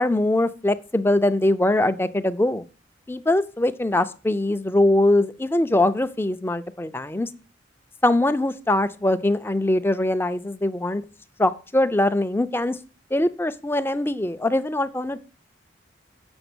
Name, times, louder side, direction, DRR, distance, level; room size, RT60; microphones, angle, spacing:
voice 1, 0.0-2.6 3.1-7.3 8.0-11.0 11.4-12.8 13.1-15.2, left 1 dB, 10° left, 11 dB, 0.4 m, -22 dB
7.9 x 5.8 x 6.1 m, 0.35 s
head